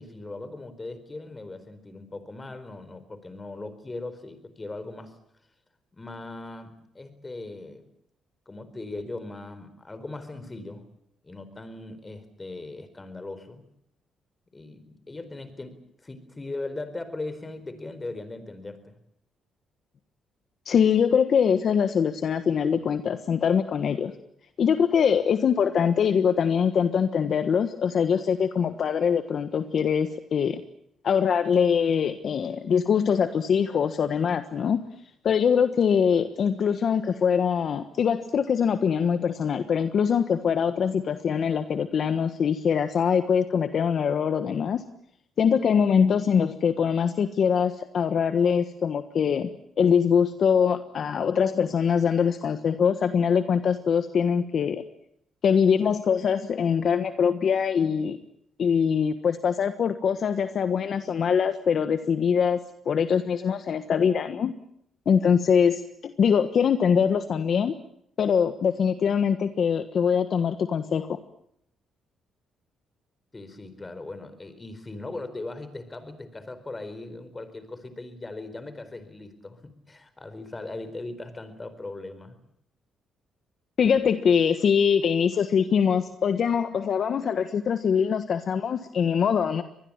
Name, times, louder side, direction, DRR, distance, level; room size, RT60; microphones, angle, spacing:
voice 1, 0.0-5.1 5.9-7.9 8.5-10.9 11.2-13.7 14.5-19.0 73.3-82.4, left 2 dB, 20° left, 12 dB, 4.5 m, -39 dB
voice 2, 20.6-24.1 24.6-30.6 31.0-34.8 35.2-44.8 45.4-49.5 49.8-54.8 55.4-58.2 58.6-64.5 65.1-67.7 68.2-71.2 83.8-89.6, left 7 dB, 55° left, 10 dB, 1.4 m, -23 dB
24.5 x 20.0 x 8.9 m, 0.73 s
cardioid pair, 90°, 0 cm